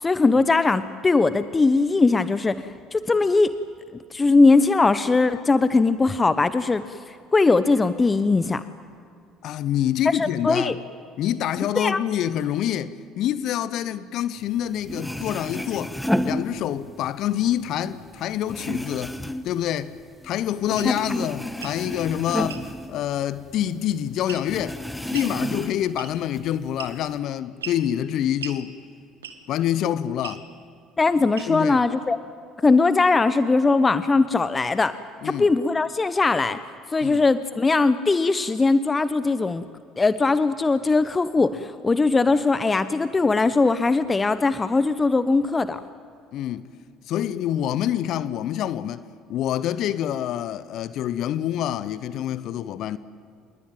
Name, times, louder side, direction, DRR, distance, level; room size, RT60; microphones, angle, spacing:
voice 1, 0.0-3.5 4.1-8.6 10.1-10.7 11.8-12.0 20.8-20.9 31.0-32.2 32.6-34.9 35.2-36.6 36.9-39.6 40.0-45.8, left 3 dB, 25° left, 0.9 m, -20 dB
voice 2, 9.4-10.7 11.2-15.9 16.2-19.2 19.4-19.9 20.2-24.8 25.1-28.7 29.5-30.5 31.5-31.8 35.2-35.5 37.0-37.2 46.3-46.7 47.1-49.0 49.3-53.0, left 11 dB, 60° left, 0.8 m, -26 dB
sound 1, 14.6-14.7 14.8-17.1 17.4-20.3 20.6-23.6 23.9-24.0 24.5-26.0 26.3-27.1, left 1 dB, 5° left, 1.5 m, -30 dB
sound 2, 20.8-20.9 21.5-21.8 22.5-22.7 24.3-24.6 25.1-25.3 26.0-26.3 26.8-27.1 27.6-27.8 28.4-28.6 29.2-29.5 30.2-30.4 31.3-31.7, right 7 dB, 85° right, 1.7 m, -38 dB
27.0 x 21.5 x 9.1 m
hypercardioid pair, 55°, 0 cm